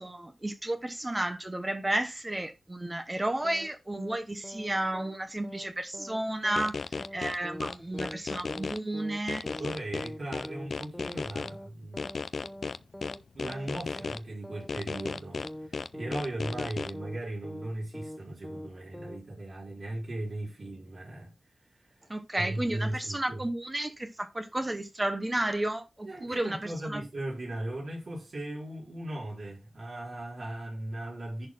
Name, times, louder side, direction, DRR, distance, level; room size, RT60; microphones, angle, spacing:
voice 1, 0.0-9.4 22.1-27.0, right 1 dB, 15° right, 0.9 m, -32 dB
sound 1, 3.4-3.7 3.9-4.2 4.4-4.7 4.9-5.2 5.4-5.7 5.9-6.2 6.4-6.7 6.9-7.2 7.4-7.7 7.9-8.2 8.4-8.7 8.9-9.2 9.4-9.7 9.9-10.2 10.4-10.7 10.9-11.2 11.4-11.7 11.9-12.2 12.4-12.7 12.9-13.2 13.4-13.7 13.9-14.2 14.4-14.7 14.9-15.2 15.4-15.7 15.9-16.2 16.4-16.7 16.9-17.2 17.4-17.7 17.9-18.2 18.4-18.7 18.9-19.2, equal, 5° left, 0.7 m, -43 dB
sound 2, 6.6-8.8 9.3-11.5 12.0-14.2 14.7-16.9, left 4 dB, 60° left, 0.4 m, -35 dB
voice 2, 9.6-12.0 12.8-12.9 13.3-21.3 21.7-21.9 22.4-23.4 26.0-31.5, right 1 dB, 50° right, 3.6 m, -38 dB
11.0 x 4.1 x 4.5 m
wide cardioid pair, 150°, 0 cm